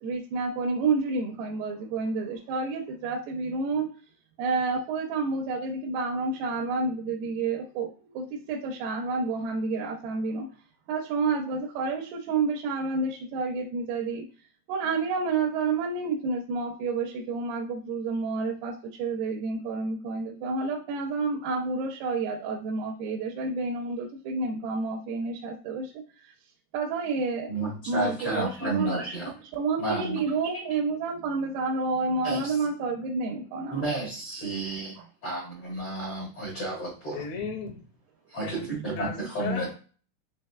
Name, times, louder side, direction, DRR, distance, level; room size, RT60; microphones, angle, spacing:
voice 1, 0.0-3.9 4.4-7.9 8.1-10.5 10.9-14.3 14.7-18.7 19.0-26.0 26.7-27.5 27.9-29.0 29.5-33.8, right 4 dB, 85° right, 0 dB, 2.6 m, -29 dB
voice 2, 27.5-29.3 29.8-30.6 32.2-32.5 33.7-34.9 35.2-37.3 38.3-39.7, right 2 dB, 60° left, -5 dB, 1.4 m, -31 dB
voice 3, 37.1-37.8 38.4-38.7 38.9-39.7, left 5 dB, 75° left, 1 dB, 1.5 m, -35 dB
6.5 x 2.9 x 2.2 m, 0.39 s
omnidirectional pair, 4.7 m